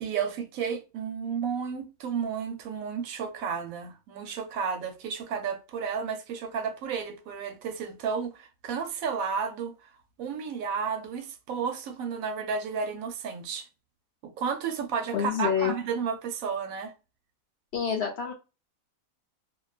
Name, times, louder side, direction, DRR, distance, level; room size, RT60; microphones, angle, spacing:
voice 1, 0.0-9.9 10.2-13.7 14.2-16.9, right 6 dB, 75° right, 1.0 m, -32 dB
voice 2, 15.1-15.7 17.7-18.3, left 8 dB, 60° left, 0.8 m, -27 dB
2.5 x 2.2 x 2.3 m
omnidirectional pair, 1.5 m